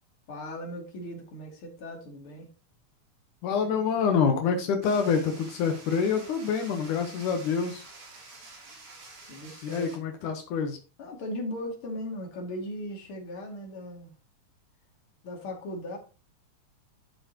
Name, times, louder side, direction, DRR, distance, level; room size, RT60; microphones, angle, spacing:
voice 1, 0.3-2.5 9.3-9.9 11.0-14.1 15.2-16.0, left 1 dB, 45° left, 3.2 m, -38 dB
voice 2, 3.4-7.8 9.6-10.8, left 6 dB, 85° left, 2.8 m, -26 dB
sound 1, 4.8-10.0, right 3 dB, 80° right, 4.6 m, -48 dB
12.0 x 6.7 x 3.0 m
omnidirectional pair, 3.5 m